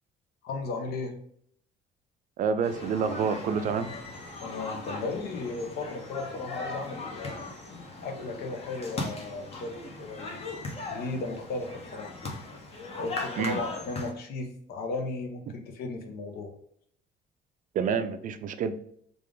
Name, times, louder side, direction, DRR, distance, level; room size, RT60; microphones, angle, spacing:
voice 1, 0.4-1.2 4.4-7.5 8.0-10.4 10.9-12.1 13.0-16.5, left 3 dB, 70° left, 4 dB, 0.8 m, -35 dB
voice 2, 2.4-3.9 13.4-13.6 17.7-18.7, right 6 dB, 50° right, 10 dB, 0.4 m, -28 dB
sound 1, 2.6-14.1, left 2 dB, 35° left, 0.9 m, -39 dB
3.3 x 2.5 x 3.6 m, 0.65 s
cardioid pair, 110°, 17 cm